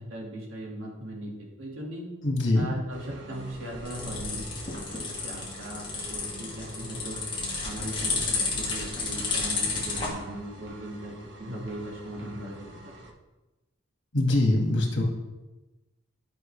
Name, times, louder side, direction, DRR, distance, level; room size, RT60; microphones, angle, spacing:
voice 1, 0.0-2.0 2.6-7.2 7.6-11.1 11.4-12.6 12.8-12.9, right 1 dB, 75° right, -2 dB, 2.0 m, -38 dB
voice 2, 2.2-2.7 14.1-15.0, left 1 dB, 60° left, 0 dB, 2.0 m, -23 dB
sound 1, 2.9-13.1, right 1 dB, 60° right, 0.9 m, -46 dB
sound 2, 3.3-10.1, left 4 dB, 25° left, 1.6 m, -32 dB
11.0 x 5.4 x 3.3 m, 1.1 s
head